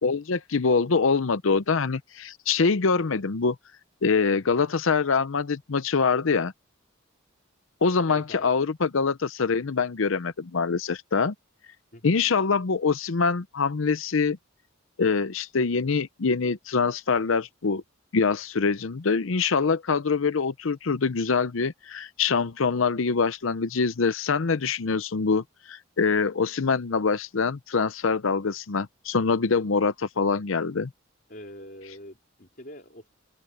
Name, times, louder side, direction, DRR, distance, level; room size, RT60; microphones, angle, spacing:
voice 1, 0.0-3.6 4.0-6.5 7.8-11.3 12.0-14.4 15.0-17.8 18.1-30.9, left 5 dB, 75° left, 0.7 m, -24 dB
voice 2, 8.1-8.5 11.9-12.0 31.3-33.1, left 1 dB, 45° left, 3.5 m, -43 dB
open air
head